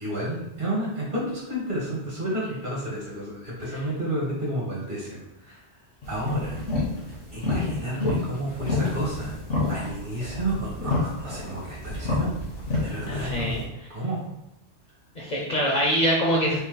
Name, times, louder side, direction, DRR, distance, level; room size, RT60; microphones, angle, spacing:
voice 1, 0.0-5.6 6.1-6.6 7.3-9.3 9.7-12.3 12.8-14.2, right 1 dB, 45° right, -4 dB, 1.5 m, -31 dB
sound 1, 6.0-13.6, left 2 dB, 85° left, 1.5 m, -29 dB
voice 2, 13.1-13.6 15.1-16.6, equal, 45° left, -3 dB, 0.7 m, -24 dB
3.9 x 2.1 x 4.0 m, 0.91 s
omnidirectional pair, 1.2 m